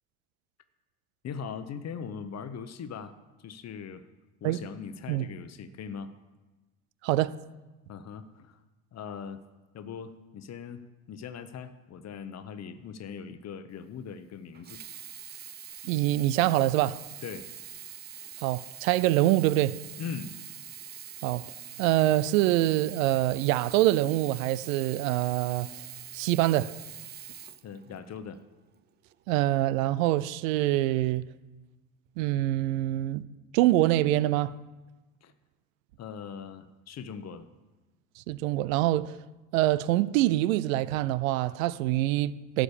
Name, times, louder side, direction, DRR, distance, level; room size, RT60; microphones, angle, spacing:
voice 1, 1.2-4.1 4.4-6.1 7.9-8.6 8.9-9.4 9.7-10.8 11.1-14.8 17.2-17.5 20.0-20.3 27.6-28.4 35.2-35.3 36.0-37.5, left 6 dB, 40° left, 0.9 m, -40 dB
voice 2, 7.0-7.4 15.8-17.0 18.4-19.8 21.2-21.4 21.8-25.7 26.1-26.8 29.3-31.2 32.2-33.2 33.5-34.5 38.2-39.2 39.5-42.6, right 15 dB, 85° right, 0.5 m, -25 dB
Sink (filling or washing), 14.5-28.3 29.1-29.2, right 9 dB, 25° right, 0.5 m, -44 dB
12.0 x 5.1 x 6.8 m
supercardioid pair, 80°, 39 cm